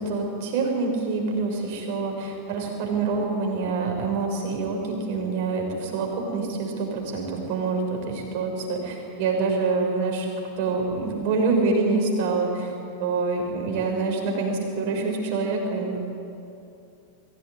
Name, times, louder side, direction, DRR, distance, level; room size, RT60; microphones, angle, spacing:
voice 1, 0.0-10.3 10.6-12.7 13.0-16.0, right 4 dB, 45° right, 1 dB, 6.6 m, -26 dB
23.5 x 17.0 x 9.7 m, 2.7 s
figure-of-eight pair, 90°, 0 cm